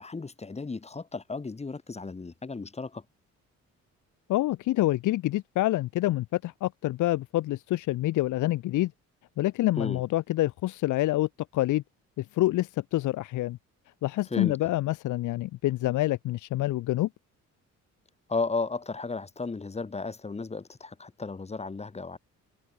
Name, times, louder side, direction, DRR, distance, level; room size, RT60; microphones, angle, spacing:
voice 1, 0.0-3.0 9.8-10.0 14.3-14.6 18.3-22.2, left 4 dB, 20° left, 1.4 m, -34 dB
voice 2, 4.3-8.9 9.4-11.8 12.2-13.6 14.0-17.1, left 16 dB, 80° left, 1.0 m, -27 dB
cardioid pair, 90°, 30 cm